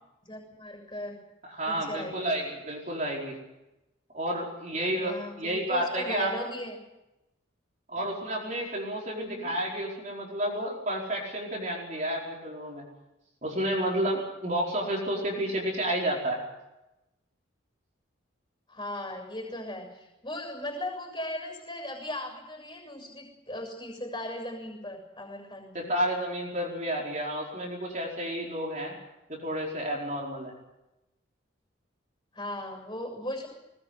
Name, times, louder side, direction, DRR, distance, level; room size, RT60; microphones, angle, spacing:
voice 1, 0.2-1.2 1.7-2.4 4.9-6.8 7.9-8.0 9.2-9.5 18.7-25.9 32.3-33.5, left 1 dB, 20° left, 3 dB, 6.6 m, -38 dB
voice 2, 1.4-3.4 4.1-6.3 7.9-12.9 13.4-16.4 25.7-29.0 29.3-30.5, right 1 dB, 40° right, -2 dB, 4.8 m, -31 dB
20.5 x 20.0 x 8.1 m, 0.95 s
head